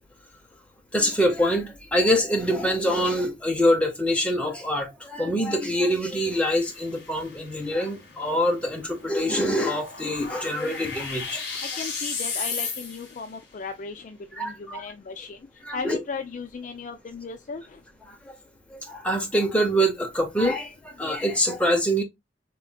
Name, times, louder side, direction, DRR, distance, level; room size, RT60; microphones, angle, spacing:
voice 1, 0.9-11.4 14.4-14.8 15.7-16.0 18.1-18.3 18.7-22.0, equal, 5° left, 0.8 m, -25 dB
sound 1, 5.8-13.3, left 5 dB, 70° left, 1.6 m, -36 dB
voice 2, 11.6-15.4 15.7-17.8, left 4 dB, 45° left, 0.4 m, -36 dB
4.1 x 3.1 x 2.2 m
head